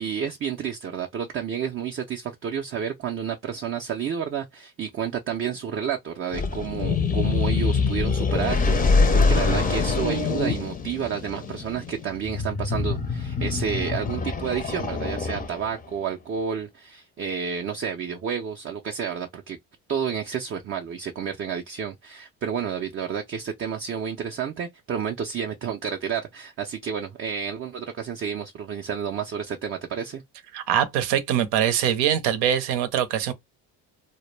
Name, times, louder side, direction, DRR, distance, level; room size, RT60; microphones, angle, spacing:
voice 1, 0.0-19.6 19.9-30.2, right 7 dB, 35° right, 0.4 m, -30 dB
sound 1, 6.3-15.8, left 4 dB, 20° left, 0.5 m, -24 dB
voice 2, 30.5-33.3, right 10 dB, 85° right, 0.7 m, -23 dB
2.1 x 2.1 x 3.1 m
cardioid pair, 90°, 40 cm